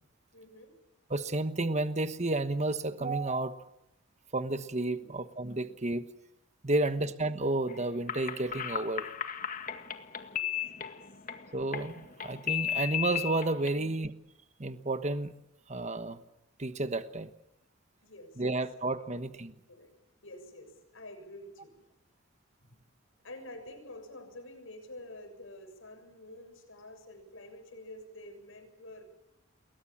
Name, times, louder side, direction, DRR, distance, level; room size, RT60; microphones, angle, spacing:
voice 1, 0.3-0.8 5.0-5.1 5.6-5.7 10.3-10.5 10.8-11.0 11.3-11.4 18.0-18.6 19.1-19.2 19.7-19.9 20.2-21.9 22.6-22.8 23.2-29.0, left 1 dB, 75° left, 6 dB, 7.1 m, -49 dB
voice 2, 1.1-3.7 4.3-6.1 6.6-9.1 11.5-11.9 12.2-14.1 14.6-15.3 15.7-16.2 16.6-17.3 18.4-19.5, right 2 dB, 35° right, 11 dB, 1.2 m, -31 dB
sound 1, 7.7-13.7, left 10 dB, 40° left, 1.9 m, -36 dB
29.0 x 22.0 x 7.5 m, 0.83 s
head